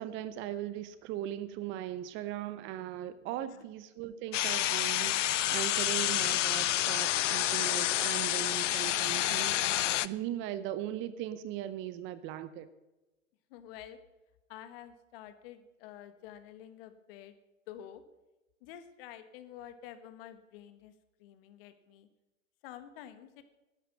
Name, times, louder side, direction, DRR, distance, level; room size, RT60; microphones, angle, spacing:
voice 1, 0.0-12.7, right 12 dB, 30° right, 14 dB, 0.7 m, -39 dB
voice 2, 3.3-3.6 13.5-14.0 14.5-17.3 17.7-18.0 18.6-20.9 21.2-22.1 22.6-23.4, left 11 dB, 45° left, 10 dB, 1.6 m, -49 dB
sound 1, 4.3-10.1, left 13 dB, 65° left, 0.6 m, -29 dB
12.5 x 9.8 x 6.7 m, 1.0 s
hypercardioid pair, 110°, 40 cm